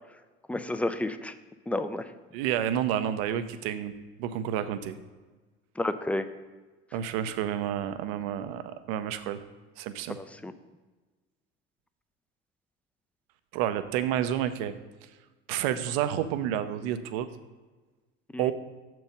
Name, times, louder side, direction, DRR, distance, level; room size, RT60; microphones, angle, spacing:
voice 1, 0.5-1.3 1.7-2.1 5.8-6.3 10.2-10.5 18.3-18.5, left 1 dB, 5° left, 11 dB, 0.3 m, -31 dB
voice 2, 2.3-5.0 6.9-8.6 8.9-9.4 9.8-10.2 13.5-14.7 15.5-17.3 18.4-18.5, right 10 dB, 70° right, 11 dB, 0.6 m, -30 dB
6.9 x 4.6 x 5.1 m, 1.3 s
hypercardioid pair, 75°, 31 cm